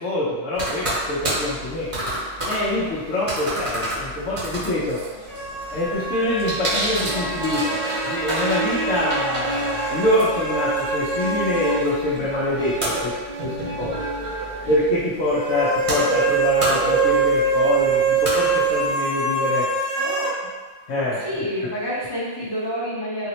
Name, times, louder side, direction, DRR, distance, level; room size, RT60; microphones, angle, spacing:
voice 1, 0.0-2.1 2.4-5.0 5.7-13.2 13.4-14.0 14.7-19.7 20.9-21.2, left 1 dB, 85° left, -8 dB, 1.0 m, -25 dB
sound 1, 0.5-18.9, right 1 dB, 30° right, 0.8 m, -30 dB
sound 2, 5.3-11.8 12.1-12.2 15.3-20.4, right 4 dB, 80° right, 1.1 m, -24 dB
sound 3, 7.0-14.8, right 2 dB, 55° right, 0.5 m, -30 dB
voice 2, 12.6-13.0 13.6-13.8 14.6-14.7 19.9-20.3 21.1-23.3, equal, 25° left, -8 dB, 0.6 m, -30 dB
4.0 x 2.0 x 2.8 m, 1.3 s
omnidirectional pair, 1.3 m